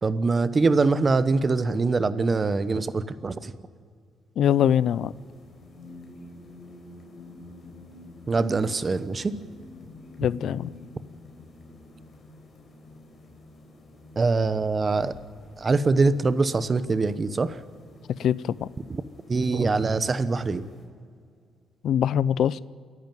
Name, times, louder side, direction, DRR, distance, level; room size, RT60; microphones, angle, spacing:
voice 1, 0.0-3.5 8.3-9.3 14.2-15.1 15.6-17.6 19.3-20.6, right 3 dB, 35° right, 14 dB, 0.9 m, -23 dB
voice 2, 4.4-5.1 10.2-10.7 18.2-18.7 21.8-22.6, left 9 dB, 70° left, 20 dB, 0.4 m, -23 dB
sound 1, 4.5-20.9, left 2 dB, 45° left, 4.5 m, -49 dB
28.0 x 11.0 x 9.2 m, 2.2 s
cardioid pair, 90°, 0 cm